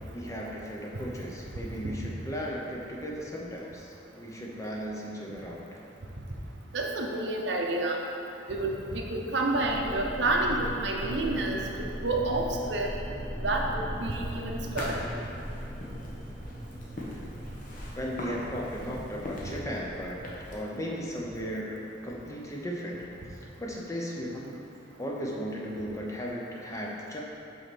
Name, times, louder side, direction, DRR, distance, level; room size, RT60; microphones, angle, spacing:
voice 1, 0.1-5.6 18.0-20.2 20.5-23.0 23.6-24.6 25.0-27.2, equal, 15° left, -3 dB, 0.7 m, -36 dB
voice 2, 6.7-8.0 8.5-11.6 12.0-12.9 13.4-14.9 18.9-19.0, right 2 dB, 70° right, 0 dB, 0.8 m, -29 dB
sound 1, 9.6-20.2, equal, ahead, 1.1 m, -39 dB
sound 2, 13.9-20.5, left 1 dB, 45° left, 1.0 m, -42 dB
5.5 x 4.4 x 6.1 m, 3.0 s
head